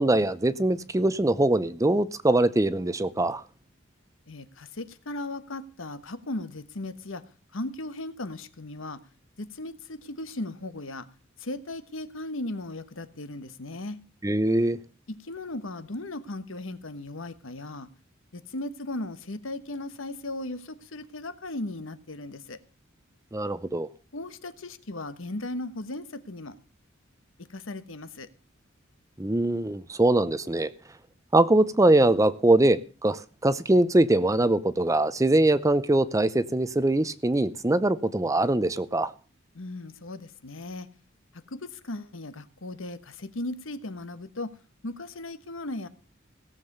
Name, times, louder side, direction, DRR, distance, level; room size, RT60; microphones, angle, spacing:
voice 1, 0.0-3.4 14.2-14.8 23.3-23.9 29.2-30.7 31.3-39.1, right 2 dB, 15° right, 0.6 m, -22 dB
voice 2, 4.3-7.2 7.5-9.0 9.4-11.1 11.4-14.0 15.1-17.9 18.3-22.6 24.1-26.6 27.4-28.3 39.5-40.9 41.3-44.6 44.8-45.9, left 2 dB, 75° left, 1.2 m, -37 dB
17.0 x 7.5 x 6.7 m
head